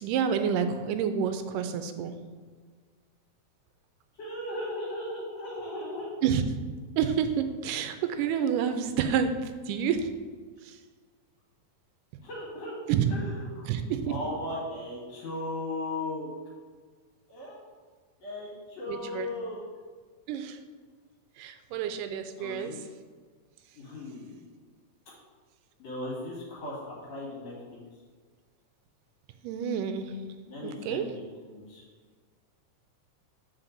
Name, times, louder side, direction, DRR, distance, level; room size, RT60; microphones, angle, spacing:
voice 1, 0.0-2.1 6.2-6.6 7.0-10.1 10.6-10.8 12.9-13.1 13.7-14.2 18.9-19.3 20.3-20.6 21.4-22.7 29.4-30.1 30.6-31.1, right 7 dB, 85° right, 8 dB, 2.2 m, -29 dB
voice 2, 4.1-6.1 12.2-12.8 13.1-13.7 14.1-16.3 17.3-17.7 18.2-19.6 22.3-22.8 23.7-24.5 25.8-27.8 30.5-31.2 31.5-31.8, left 1 dB, 55° left, -6 dB, 2.9 m, -37 dB
7.4 x 5.5 x 3.9 m, 1.5 s
omnidirectional pair, 3.7 m